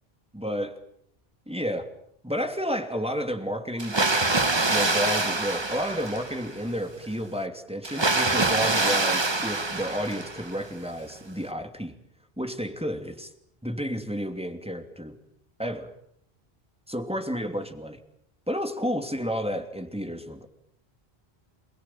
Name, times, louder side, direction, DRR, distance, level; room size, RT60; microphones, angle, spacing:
voice 1, 0.3-0.8 1.5-1.9 2.2-4.2 4.7-11.9 12.4-13.3 13.6-15.2 15.6-15.9 16.9-18.0 18.5-20.5, equal, 5° right, 6 dB, 2.8 m, -31 dB
Water, 3.8-6.6 7.8-10.7, right 2 dB, 25° right, 1.3 m, -25 dB
28.0 x 22.0 x 9.1 m, 0.71 s
omnidirectional pair, 1.0 m